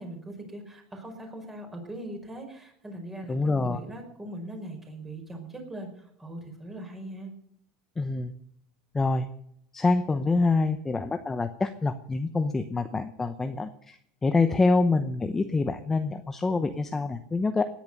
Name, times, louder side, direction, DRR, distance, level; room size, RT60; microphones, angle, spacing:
voice 1, 0.0-7.3, right 1 dB, 10° right, 3 dB, 5.1 m, -40 dB
voice 2, 3.3-3.8 8.0-8.3 8.9-9.3 9.7-17.7, left 3 dB, 10° left, 8 dB, 0.9 m, -26 dB
18.0 x 10.5 x 6.7 m, 0.71 s
supercardioid pair, 150°, 3 cm